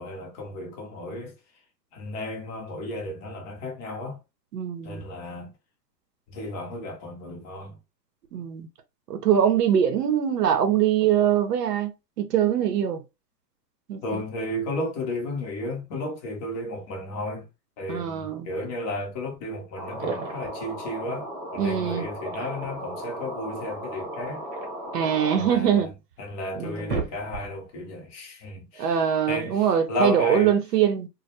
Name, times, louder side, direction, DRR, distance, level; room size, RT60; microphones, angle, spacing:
voice 1, 0.0-1.3 1.9-4.2 4.8-5.5 6.3-7.8 14.0-17.5 17.8-24.4 25.3-25.9 26.2-29.0 29.3-30.6, left 1 dB, 20° left, 0.6 m, -33 dB
voice 2, 4.5-5.0 8.3-8.7 9.1-13.0 13.9-14.2 17.9-18.5 21.6-22.1 24.9-25.9 26.6-27.1 28.8-31.1, right 9 dB, 70° right, 0.8 m, -23 dB
sound 1, 19.4-19.5 19.8-20.6 22.0-22.9 24.1-25.5 26.1-26.2 26.5-27.7, right 5 dB, 45° right, 0.9 m, -35 dB
sound 2, 19.7-25.5, equal, 25° right, 0.3 m, -36 dB
2.2 x 2.1 x 2.7 m
hypercardioid pair, 125°, 50 cm